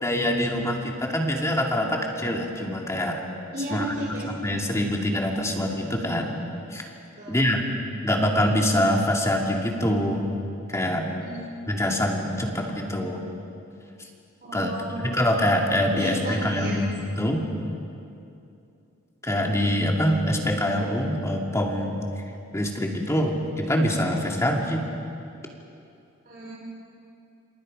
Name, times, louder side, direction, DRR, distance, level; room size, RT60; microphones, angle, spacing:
voice 1, 0.0-3.2 3.7-4.0 4.3-6.4 6.7-6.9 7.3-7.6 8.0-10.2 10.7-11.1 11.7-13.2 14.5-14.7 15.0-17.4 19.2-22.0 22.5-24.8, left 1 dB, 15° left, 0 dB, 2.4 m, -24 dB
voice 2, 3.5-4.2 7.2-7.3 11.2-11.4 14.4-15.1 15.9-16.7 26.3-26.5, right 1 dB, 45° right, -6 dB, 4.3 m, -33 dB
28.0 x 27.5 x 5.4 m, 2.6 s
head